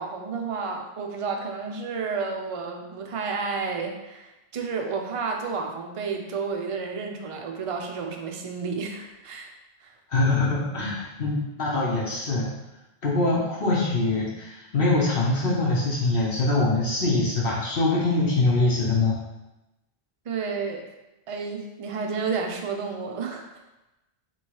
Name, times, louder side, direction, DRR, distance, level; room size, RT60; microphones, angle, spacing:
voice 1, 0.0-9.5 9.8-9.9 20.3-20.8 21.3-23.5, right 5 dB, 45° right, 3 dB, 0.4 m, -31 dB
voice 2, 10.1-12.5 13.0-19.1, left 2 dB, 65° left, -6 dB, 1.1 m, -23 dB
3.0 x 3.0 x 4.5 m, 0.99 s
omnidirectional pair, 1.1 m